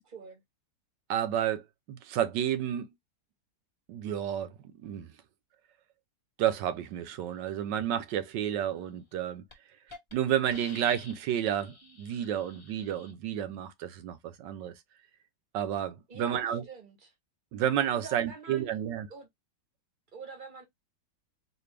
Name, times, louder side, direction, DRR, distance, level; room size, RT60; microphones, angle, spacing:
voice 1, 0.1-0.4 16.1-17.1 17.9-18.8 19.1-19.3 20.1-20.7, right 4 dB, 35° right, 0.9 m, -46 dB
voice 2, 1.1-1.6 1.9-2.9 3.9-5.1 6.4-9.4 10.1-14.7 15.5-16.6 17.5-19.1, right 10 dB, 80° right, 1.3 m, -31 dB
Hiss, 8.9-9.1 9.5-9.6 9.9-10.1 10.5-13.1, left 3 dB, 25° left, 0.7 m, -50 dB
4.1 x 2.6 x 3.3 m
omnidirectional pair, 1.9 m